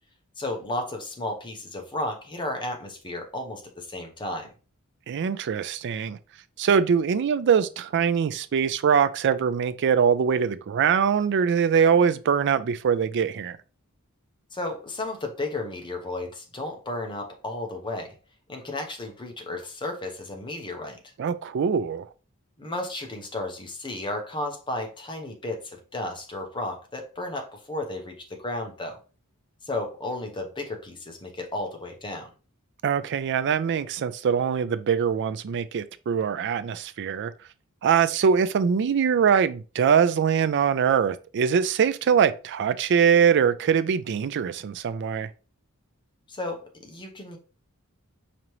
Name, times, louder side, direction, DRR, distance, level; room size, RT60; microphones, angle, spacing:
voice 1, 0.4-4.5 14.5-18.1 18.5-21.0 22.6-29.0 29.6-32.3 46.3-47.4, left 2 dB, 20° left, 0.8 m, -33 dB
voice 2, 5.1-6.2 6.6-13.6 21.2-22.1 32.8-37.3 37.8-45.3, right 7 dB, 55° right, 0.3 m, -23 dB
5.0 x 2.9 x 3.0 m
head